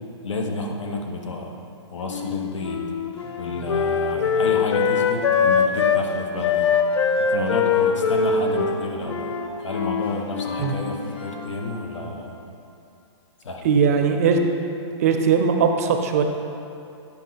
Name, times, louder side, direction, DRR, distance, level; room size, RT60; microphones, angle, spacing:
voice 1, 0.2-1.5 1.9-2.9 3.4-6.7 7.2-9.3 9.6-12.4 13.4-13.6, left 2 dB, 90° left, 2 dB, 1.3 m, -30 dB
Wind instrument woodwind instrument, 2.1-6.0 6.4-10.8, left 6 dB, 70° left, 0.6 m, -22 dB
sound 1, 3.2-12.3, left 2 dB, 50° left, 1.9 m, -39 dB
voice 2, 13.6-14.4 15.0-16.2, right 6 dB, 30° right, 5 dB, 0.5 m, -19 dB
10.0 x 5.7 x 4.1 m, 2.6 s
hypercardioid pair, 170°, 15 cm